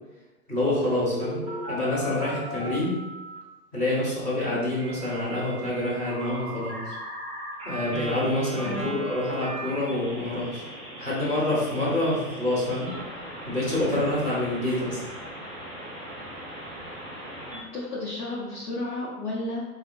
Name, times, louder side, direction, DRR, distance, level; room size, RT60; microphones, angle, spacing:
voice 1, 0.5-3.0 3.7-6.9 7.6-10.6 11.0-12.9 13.5-15.1, left 1 dB, 5° left, -16 dB, 0.4 m, -27 dB
Telephone, 0.9-3.4 4.8-17.6, right 1 dB, 15° right, 1.3 m, -38 dB
voice 2, 8.6-9.0 17.7-19.6, left 2 dB, 75° left, -7 dB, 0.8 m, -32 dB
3.4 x 2.1 x 2.5 m, 1.1 s
figure-of-eight pair, 105°, 45 cm